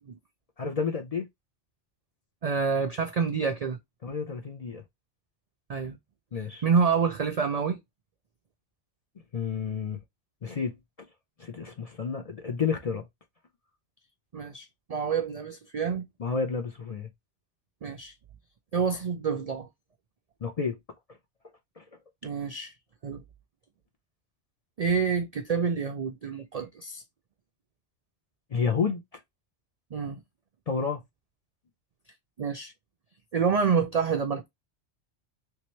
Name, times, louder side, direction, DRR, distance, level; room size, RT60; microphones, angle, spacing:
voice 1, 0.6-1.2 4.0-4.8 6.3-6.6 9.3-10.0 10.4-10.8 11.4-13.0 16.2-17.1 20.4-20.8 21.8-21.9 28.5-29.0 30.7-31.0, left 5 dB, 45° left, 0.5 m, -30 dB
voice 2, 2.4-3.8 5.7-6.0 6.6-7.8 14.3-16.1 17.8-18.1 18.7-19.7 22.2-22.7 23.0-23.2 24.8-27.0 29.9-30.2 32.4-32.7 33.3-34.5, right 6 dB, 60° right, 0.4 m, -27 dB
3.3 x 2.9 x 3.0 m
omnidirectional pair, 1.2 m